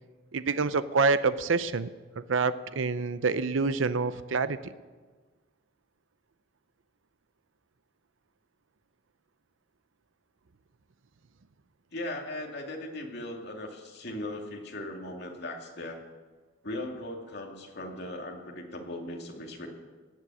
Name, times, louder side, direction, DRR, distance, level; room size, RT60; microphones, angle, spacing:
voice 1, 0.3-1.9 2.2-4.6, right 4 dB, 80° right, 13 dB, 0.6 m, -27 dB
voice 2, 11.9-16.0 16.6-19.7, left 1 dB, 55° left, 1 dB, 2.4 m, -38 dB
17.5 x 7.6 x 8.4 m, 1.4 s
head